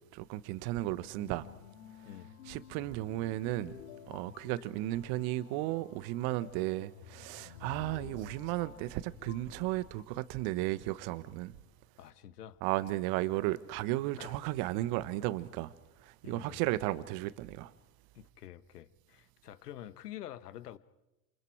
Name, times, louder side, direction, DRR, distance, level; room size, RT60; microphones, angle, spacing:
voice 1, 0.1-1.5 2.5-3.7 4.1-11.5 12.6-15.7 16.0-17.7, right 17 dB, 50° right, 1.5 m, -34 dB
sound 1, 0.8-10.0, left 9 dB, 60° left, 2.6 m, -52 dB
voice 2, 12.0-12.6 14.2-14.4 16.2-16.7 18.1-20.8, left 12 dB, 75° left, 1.3 m, -47 dB
29.5 x 28.0 x 4.7 m
hypercardioid pair, 85°, 47 cm